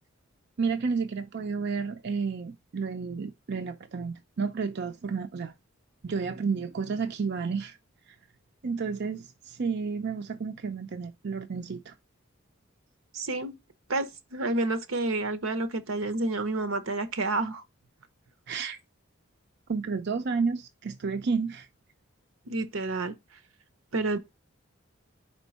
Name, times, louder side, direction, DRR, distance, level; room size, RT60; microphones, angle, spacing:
voice 1, 0.6-5.5 6.0-7.8 8.6-11.9 18.5-18.8 19.7-21.7, right 5 dB, 55° right, 0.5 m, -31 dB
voice 2, 13.1-13.5 13.9-17.6 22.5-23.1 23.9-24.2, right 2 dB, 85° right, 0.9 m, -29 dB
5.1 x 4.5 x 4.1 m
head